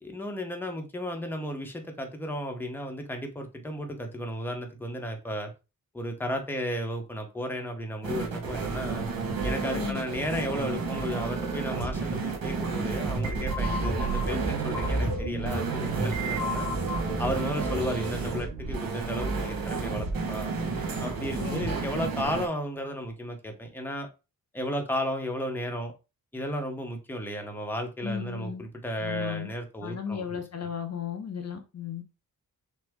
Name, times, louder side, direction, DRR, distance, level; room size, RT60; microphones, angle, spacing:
voice 1, 0.0-5.5 5.9-9.0 9.4-16.7 17.2-20.5 21.0-24.1 24.5-25.9 26.3-30.4, equal, 5° left, 0.7 m, -34 dB
sound 1, 8.0-22.5, right 4 dB, 75° right, 1.3 m, -32 dB
voice 2, 9.7-10.0 21.4-21.7 28.0-28.6 29.0-29.5 29.8-32.0, left 7 dB, 50° left, 0.6 m, -35 dB
sound 2, 13.1-20.0, right 1 dB, 60° right, 2.7 m, -33 dB
6.1 x 2.0 x 3.5 m
wide cardioid pair, 140°, 35 cm